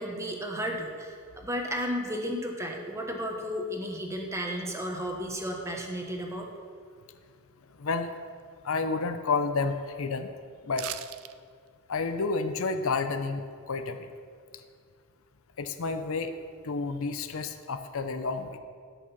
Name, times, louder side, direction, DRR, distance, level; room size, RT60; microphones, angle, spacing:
voice 1, 0.0-6.5, equal, 15° right, 1 dB, 1.3 m, -33 dB
voice 2, 7.8-8.1 8.6-10.3 10.6-10.9 11.9-14.0 15.6-16.4 16.6-18.6, left 4 dB, 70° left, 8 dB, 0.6 m, -30 dB
sound 1, 10.7-11.3 11.7-11.8, right 12 dB, 70° right, 0.5 m, -37 dB
12.5 x 6.3 x 5.9 m, 2.1 s
head